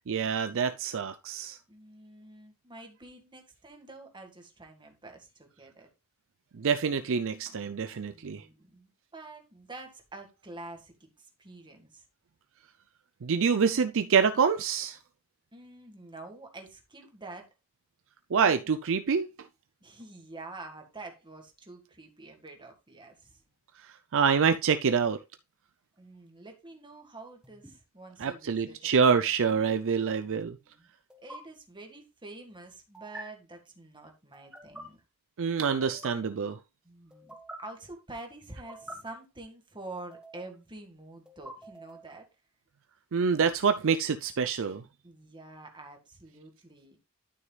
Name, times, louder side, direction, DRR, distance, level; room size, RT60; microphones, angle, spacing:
voice 1, 0.1-1.6 6.5-8.4 13.2-15.0 18.3-19.3 24.1-25.2 28.2-30.6 35.4-36.6 43.1-44.8, right 6 dB, 60° right, 0.5 m, -26 dB
voice 2, 1.7-5.9 8.1-12.0 15.5-17.5 19.8-23.4 26.0-28.9 30.2-30.9 31.2-35.0 36.8-42.3 45.0-47.0, right 2 dB, 20° right, 1.9 m, -47 dB
sound 1, 27.4-27.7 29.5-29.8 31.1-31.4 32.9-33.2 34.3-34.8 35.6-36.1 37.1-37.6 38.5-39.0 40.0-40.6 41.3-42.1, right 1 dB, 5° right, 1.5 m, -47 dB
12.0 x 6.5 x 2.4 m
head